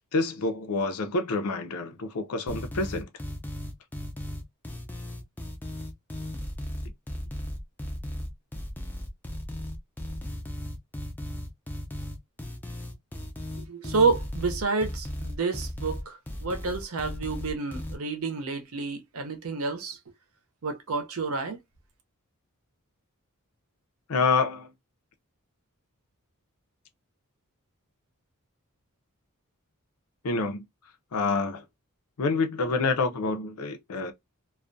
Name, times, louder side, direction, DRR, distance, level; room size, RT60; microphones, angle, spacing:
voice 1, 0.1-3.1 24.1-24.7 30.2-30.6 31.1-31.6 32.2-34.1, left 4 dB, 80° left, 0.5 m, -27 dB
sound 1, 2.5-18.0, left 1 dB, 10° left, 0.4 m, -36 dB
voice 2, 13.7-20.0 20.6-21.6, right 4 dB, 65° right, 0.6 m, -29 dB
2.4 x 2.2 x 2.5 m
head